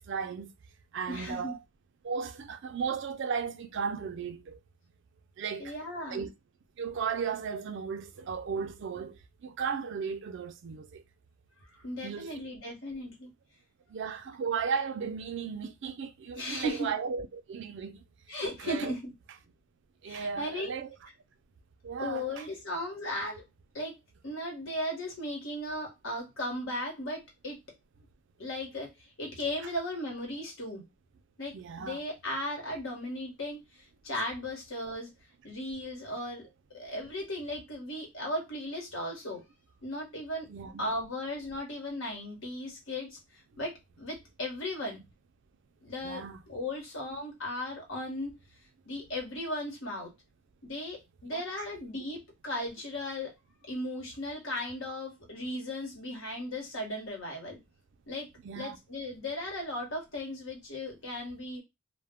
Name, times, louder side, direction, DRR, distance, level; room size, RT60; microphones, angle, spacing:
voice 1, 0.1-0.5 0.9-1.6 2.0-4.6 5.4-5.7 6.1-6.3 6.8-9.2 9.4-11.0 12.0-12.4 13.9-17.9 18.6-18.9 20.0-20.9 21.8-22.5 31.5-32.0 40.5-40.9 46.0-46.4 51.3-51.7 58.4-58.8, right 6 dB, 65° right, 0.4 m, -35 dB
voice 2, 1.0-1.5 5.6-6.3 11.7-13.3 16.3-16.9 18.3-19.1 20.1-20.8 22.0-23.4 23.7-24.0 24.2-27.6 28.4-28.9 29.2-30.8 31.4-33.6 34.0-35.1 35.4-36.5 36.7-39.4 39.8-40.5 40.8-43.2 43.6-45.0 45.8-48.3 48.9-50.1 50.6-53.3 53.7-57.6 58.1-58.3 58.5-61.6, left 1 dB, 80° left, 1.1 m, -36 dB
2.2 x 2.0 x 3.4 m
head